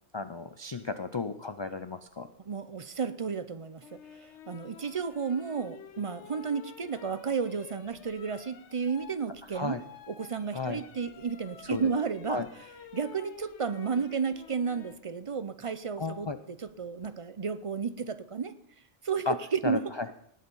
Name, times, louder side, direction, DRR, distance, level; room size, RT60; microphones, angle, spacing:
voice 1, 0.1-2.3 9.5-9.8 10.5-10.8 11.7-11.9 12.3-12.5 16.0-16.4 19.3-19.4 19.6-20.1, left 4 dB, 40° left, 10 dB, 0.4 m, -33 dB
voice 2, 2.4-3.9 4.2-9.8 10.1-12.7 12.9-18.5 19.0-19.8, right 6 dB, 40° right, 13 dB, 0.5 m, -32 dB
sound 1, 3.8-15.0 16.7-17.1, left 8 dB, 80° left, 1.1 m, -51 dB
19.0 x 6.8 x 5.4 m, 0.69 s
omnidirectional pair, 1.2 m